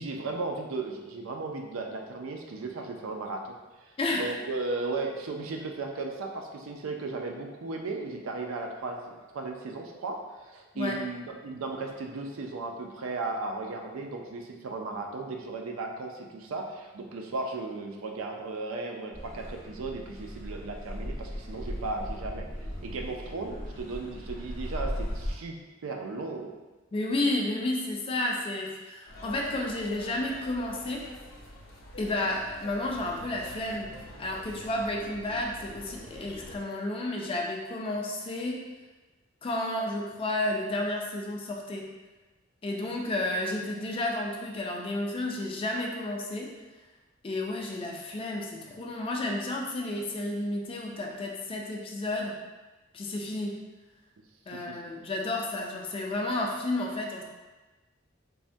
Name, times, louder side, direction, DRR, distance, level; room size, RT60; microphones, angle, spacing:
voice 1, 0.0-3.6 3.8-22.5 22.8-25.6 25.8-26.5 54.5-54.8, right 3 dB, 75° right, 2 dB, 0.4 m, -36 dB
voice 2, 4.0-4.3 10.7-11.0 26.9-31.1 32.0-33.9 34.2-38.7 39.4-41.9 42.6-46.5 47.2-52.4 52.9-53.6 54.5-57.2, left 1 dB, 25° left, 0 dB, 0.3 m, -31 dB
Car passing by / Accelerating revving vroom, 19.1-25.3, equal, 45° left, 0.8 m, -37 dB
sound 1, 29.1-36.6, left 1 dB, 80° left, 0.5 m, -46 dB
3.3 x 2.1 x 2.6 m, 1.2 s
head